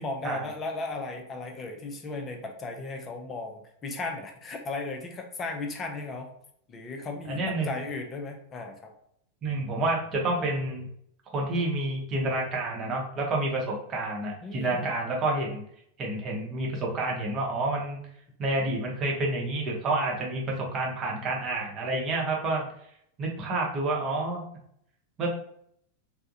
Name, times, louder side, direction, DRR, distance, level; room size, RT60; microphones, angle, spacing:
voice 1, 0.0-6.3 6.7-8.9 14.4-14.9, left 3 dB, 25° left, 4 dB, 0.5 m, -36 dB
voice 2, 7.3-7.7 9.4-10.9 11.3-15.6 16.0-18.0 18.4-22.6 23.2-24.4 25.2-25.3, right 2 dB, 30° right, -1 dB, 0.8 m, -29 dB
3.4 x 2.1 x 2.6 m, 0.68 s
figure-of-eight pair, 90°, 0 cm